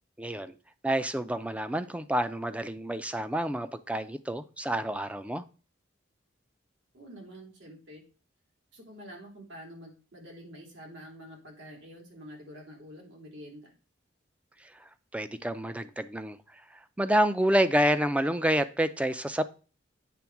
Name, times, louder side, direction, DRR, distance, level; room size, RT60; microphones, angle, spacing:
voice 1, 0.2-0.5 0.8-5.4 15.1-16.4 17.0-19.4, right 1 dB, 5° right, 12 dB, 0.4 m, -28 dB
voice 2, 6.9-8.0 8.7-13.7, equal, 75° right, -1 dB, 2.8 m, -47 dB
8.5 x 3.5 x 5.9 m, 0.35 s
head